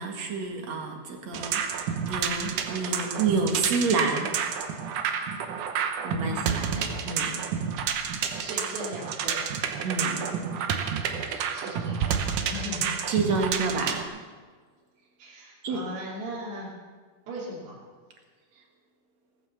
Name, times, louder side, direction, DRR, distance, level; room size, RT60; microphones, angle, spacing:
voice 1, 0.0-4.4 6.0-7.5 8.2-8.5 9.8-10.4 11.3-11.6 13.1-14.2 15.6-15.8, right 4 dB, 50° right, 2 dB, 2.5 m, -29 dB
sound 1, 1.3-14.0, right 7 dB, 70° right, 2.0 m, -30 dB
voice 2, 6.2-7.0 8.4-9.4 11.5-12.1 12.5-12.9 15.2-16.7 17.3-17.8, equal, 85° right, -6 dB, 4.8 m, -38 dB
18.0 x 9.3 x 7.2 m, 1.5 s
omnidirectional pair, 4.6 m